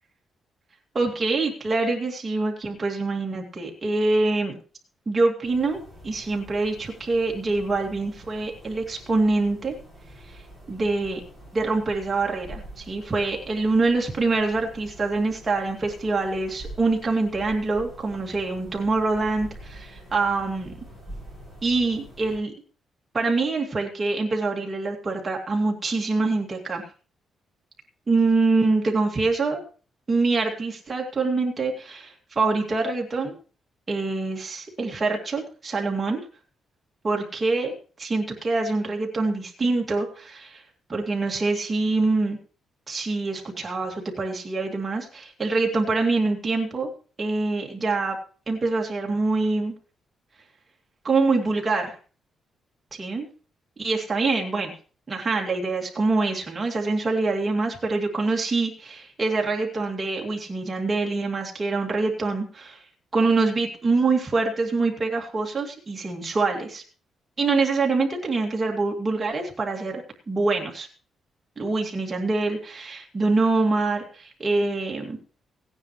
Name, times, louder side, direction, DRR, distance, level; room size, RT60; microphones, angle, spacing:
voice 1, 0.9-4.5 5.1-9.7 10.7-11.2 11.5-20.7 21.6-22.5 23.1-26.8 28.1-29.6 30.1-33.3 33.9-36.2 37.0-37.7 38.0-40.6 40.9-42.4 42.9-46.9 47.2-48.2 48.5-49.7 51.0-52.0 53.0-53.2 53.8-54.7 55.1-62.8 63.1-66.8 67.4-70.9 71.6-75.2, right 3 dB, 25° right, 0 dB, 2.3 m, -25 dB
sound 1, 5.4-22.4, right 1 dB, 15° left, 6.2 m, -45 dB
16.5 x 9.7 x 3.1 m, 0.38 s
cardioid pair, 145°, 0 cm